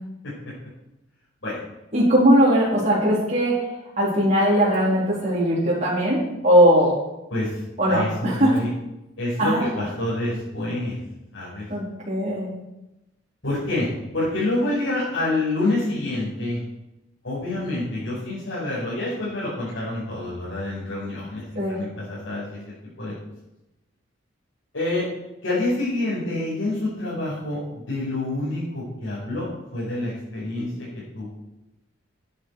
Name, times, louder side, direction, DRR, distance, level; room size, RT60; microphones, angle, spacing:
voice 1, 1.9-3.6 4.0-6.9 7.8-8.5 9.4-9.6 11.7-12.5 21.5-21.8, equal, 35° right, -7 dB, 4.1 m, -19 dB
voice 2, 7.3-7.6 7.9-8.7 9.2-11.0 11.3-11.7 13.4-16.6 17.2-23.1 24.7-25.1 25.4-29.5 29.7-30.9 31.1-31.3, left 2 dB, 85° left, -10 dB, 5.6 m, -27 dB
12.5 x 10.0 x 4.9 m, 0.94 s
head